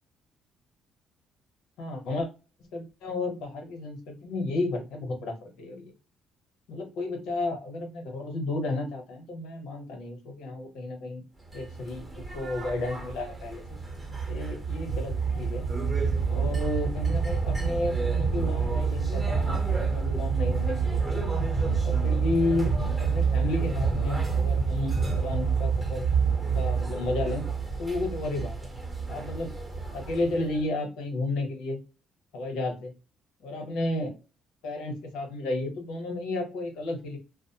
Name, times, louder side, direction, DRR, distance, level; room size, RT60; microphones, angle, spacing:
voice 1, 1.8-2.3 2.7-5.9 6.7-11.2 11.5-13.6 14.3-15.6 16.3-21.4 21.8-22.7 23.0-26.1 26.5-27.5 27.8-28.7 29.1-29.6 29.9-31.8 32.3-32.9 33.4-34.1 34.6-37.2, left 2 dB, 85° left, 4 dB, 0.9 m, -32 dB
sound 1, 11.5-30.6, right 5 dB, 10° right, 0.8 m, -28 dB
2.4 x 2.1 x 2.8 m, 0.33 s
cardioid pair, 125°, 0 cm